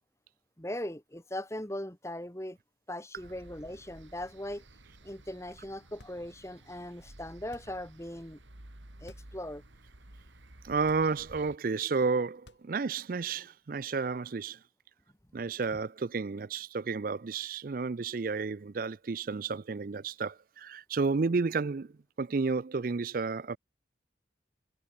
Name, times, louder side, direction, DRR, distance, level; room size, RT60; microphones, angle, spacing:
voice 1, 0.6-2.6 2.9-4.6 5.0-8.4 9.0-9.6, left 1 dB, 15° left, 2.0 m, -39 dB
sound 1, 3.2-11.6, right 1 dB, 90° right, 3.1 m, -53 dB
sound 2, 6.0-6.6 7.4-8.0 9.0-9.4 9.8-9.9 10.8-11.5 12.3-13.0, left 1 dB, 75° left, 6.5 m, -57 dB
voice 2, 10.6-14.6 15.3-21.9 22.2-23.6, right 4 dB, 50° right, 0.5 m, -31 dB
head